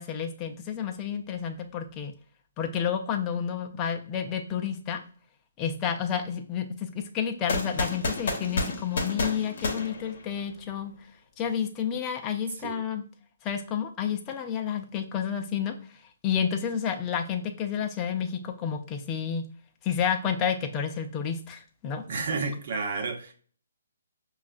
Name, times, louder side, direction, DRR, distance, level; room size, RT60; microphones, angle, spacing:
voice 1, 0.0-2.1 2.6-5.0 5.6-10.9 11.4-13.0 13.4-15.7 16.2-19.5 19.8-22.0, left 8 dB, 20° left, 0.5 m, -30 dB
sound 1, 7.5-10.7, left 2 dB, 60° left, 0.8 m, -31 dB
voice 2, 22.1-23.3, right 4 dB, 50° right, 0.8 m, -31 dB
5.2 x 2.3 x 2.4 m
hypercardioid pair, 150°, 0 cm